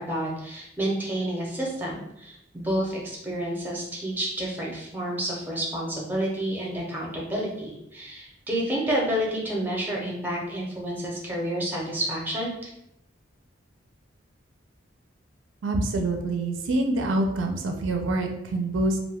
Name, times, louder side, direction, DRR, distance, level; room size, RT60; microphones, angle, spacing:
voice 1, 0.0-12.7, right 1 dB, 10° right, -3 dB, 0.6 m, -29 dB
voice 2, 15.6-19.0, right 2 dB, 75° right, 3 dB, 0.4 m, -26 dB
2.5 x 2.2 x 3.4 m, 0.81 s
head